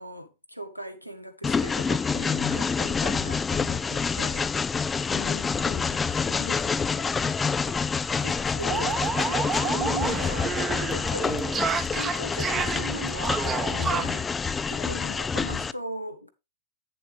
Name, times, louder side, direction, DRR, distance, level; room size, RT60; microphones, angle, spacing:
voice 1, 0.0-4.5 8.2-10.6 10.9-11.5 11.7-14.3 14.7-16.3, equal, 90° left, 0.9 m, -38 dB
Train, 1.4-15.7, left 5 dB, 15° left, 0.3 m, -27 dB
voice 2, 5.1-7.1 14.8-15.2, left 15 dB, 50° left, 0.8 m, -40 dB
sound 1, 7.2-7.4 7.6-7.7 8.1-14.2, right 6 dB, 20° right, 1.0 m, -30 dB
8.8 x 7.2 x 3.3 m
figure-of-eight pair, 90°, 0 cm